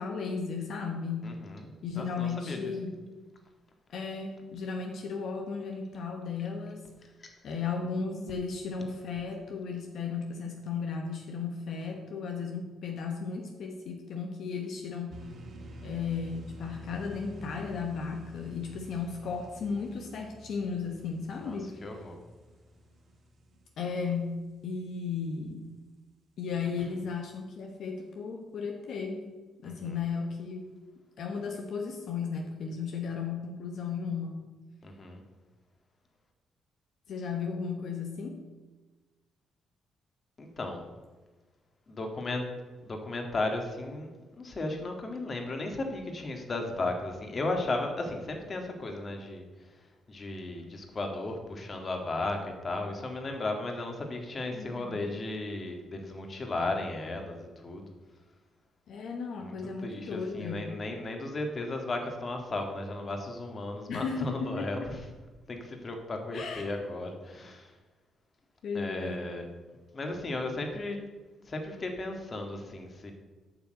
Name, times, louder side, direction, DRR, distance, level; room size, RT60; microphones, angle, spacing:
voice 1, 0.0-1.3 1.8-3.0 3.9-7.1 7.4-15.1 15.8-22.1 23.8-24.3 24.6-25.7 26.4-29.2 29.6-30.7 31.2-34.4 37.1-38.4 54.5-55.1 58.9-60.7 63.9-64.9 66.3-67.0 68.6-69.2, left 5 dB, 70° left, 2 dB, 1.1 m, -35 dB
voice 2, 1.2-2.7 7.2-7.3 21.4-22.2 29.6-30.0 34.8-35.2 40.4-40.8 41.9-42.5 42.8-44.1 44.4-49.5 50.1-57.9 59.4-59.6 59.8-65.0 65.5-67.7 68.7-69.5 69.9-71.0 71.5-73.1, left 2 dB, 35° left, 4 dB, 1.9 m, -35 dB
sound 1, 15.1-24.6, equal, 55° right, 1.7 m, -49 dB
8.4 x 5.9 x 7.8 m, 1.3 s
cardioid pair, 90°, 0 cm